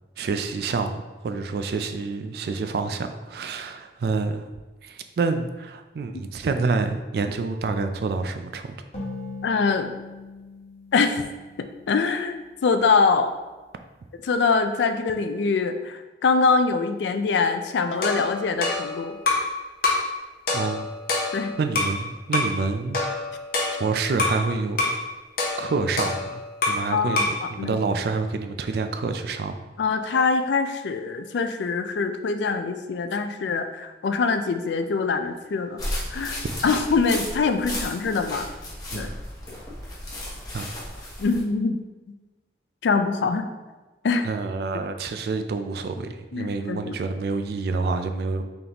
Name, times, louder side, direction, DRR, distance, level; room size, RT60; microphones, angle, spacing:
voice 1, 0.2-4.5 4.8-8.8 20.5-20.9 21.6-23.0 23.8-25.0 25.6-26.4 26.7-27.2 27.5-29.5 38.9-39.2 40.5-40.8 44.2-48.4, right 4 dB, 60° right, 8 dB, 0.3 m, -27 dB
sound 1, 8.9-12.4, left 3 dB, 35° left, 1.3 m, -39 dB
voice 2, 9.4-9.9 10.9-11.2 11.6-13.3 14.2-19.2 21.3-21.5 26.9-27.8 29.8-35.8 36.1-38.5 39.0-39.1 41.2-41.8 42.8-43.5 44.0-44.3 46.3-47.0, left 4 dB, 75° left, 8 dB, 0.4 m, -24 dB
sound 2, 18.0-19.5 19.8-20.1 20.5-22.0 22.3-22.6 22.9-24.4 24.8-25.0 25.4-26.9 27.2-27.4, left 3 dB, 50° left, 0.8 m, -26 dB
sound 3, 35.8-41.4, left 1 dB, 20° left, 0.9 m, -34 dB
3.9 x 3.5 x 2.9 m, 1.2 s
head